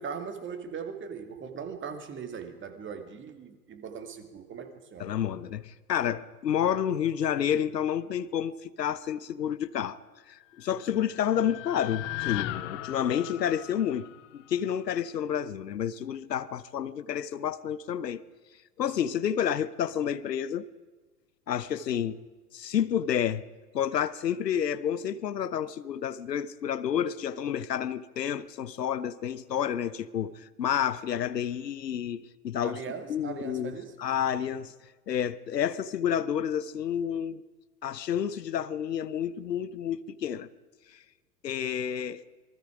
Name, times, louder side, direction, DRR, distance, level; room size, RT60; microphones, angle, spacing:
voice 1, 0.0-5.1 32.6-34.0, right 6 dB, 25° right, 2.2 m, -39 dB
voice 2, 5.0-10.0 10.3-14.1 14.3-18.2 18.8-20.7 21.5-22.2 22.5-23.4 23.7-30.3 30.6-32.8 33.1-33.7 34.0-34.7 35.1-37.4 37.8-40.5 41.4-42.2, left 9 dB, 80° left, 1.0 m, -30 dB
sound 1, 10.6-14.9, left 16 dB, 50° left, 1.3 m, -38 dB
27.0 x 20.0 x 4.9 m
hypercardioid pair, 100°, 48 cm